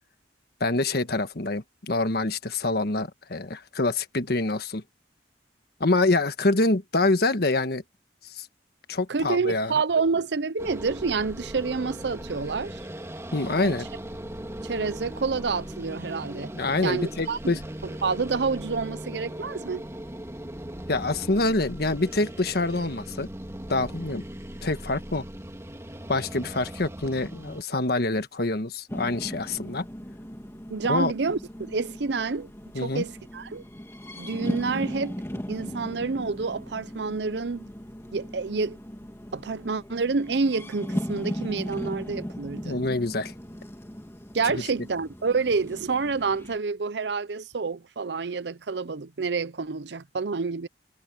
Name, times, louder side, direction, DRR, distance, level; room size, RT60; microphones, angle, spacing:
voice 1, 0.6-4.8 5.8-7.8 8.2-8.5 8.9-9.7 13.3-13.9 16.5-17.6 20.9-23.3 23.7-24.2 24.6-25.2 26.1-29.9 30.9-31.1 32.7-33.0 42.6-43.3 44.5-44.6, left 2 dB, 60° left, 1.4 m, -26 dB
voice 2, 9.1-12.8 13.6-13.7 14.6-16.5 16.8-17.5 17.8-19.9 30.7-32.5 32.7-33.6 34.2-35.2 35.5-37.7 38.1-38.8 39.3-42.8 44.3-50.7, right 4 dB, 70° right, 0.6 m, -28 dB
sound 1, 10.6-27.6, right 1 dB, 15° right, 2.2 m, -39 dB
sound 2, 28.9-46.6, equal, 15° left, 2.2 m, -38 dB
head